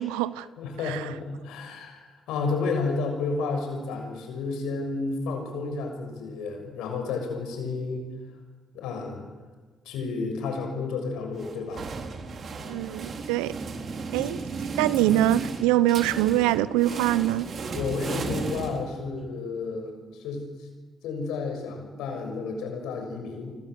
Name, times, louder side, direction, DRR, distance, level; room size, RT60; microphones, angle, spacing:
voice 1, 0.0-0.5 0.8-1.1 12.7-13.5 14.1-14.4 14.8-17.5, right 14 dB, 90° right, 0.9 m, -24 dB
voice 2, 0.6-8.0 8.7-9.4 9.8-11.9 14.2-14.4 15.1-15.2 17.7-20.5 21.0-23.6, left 4 dB, 80° left, 6.6 m, -31 dB
sound 1, 11.4-19.3, right 4 dB, 55° right, 3.6 m, -35 dB
29.5 x 25.5 x 7.8 m
supercardioid pair, 55°, 0 cm